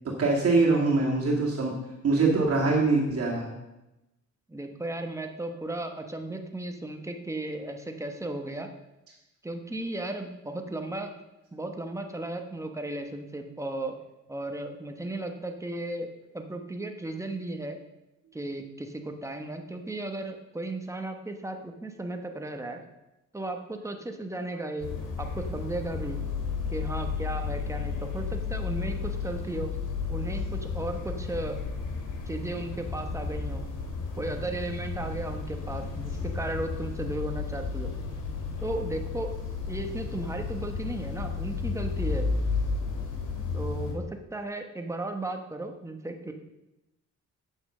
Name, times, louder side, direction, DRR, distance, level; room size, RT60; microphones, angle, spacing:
voice 1, 0.0-1.7 2.0-3.5, right 3 dB, 50° right, -3 dB, 2.0 m, -23 dB
voice 2, 4.5-8.7 9.4-11.1 11.5-14.0 14.3-17.8 18.3-22.8 23.3-24.9 25.2-26.2 26.7-29.7 30.1-31.6 32.3-33.6 34.2-37.9 38.6-39.3 39.7-42.3 43.5-46.3, right 2 dB, 10° right, 4 dB, 1.0 m, -35 dB
sound 1, 24.8-43.9, left 4 dB, 90° left, 2.3 m, -33 dB
8.7 x 8.1 x 6.6 m, 0.96 s
wide cardioid pair, 160°, 31 cm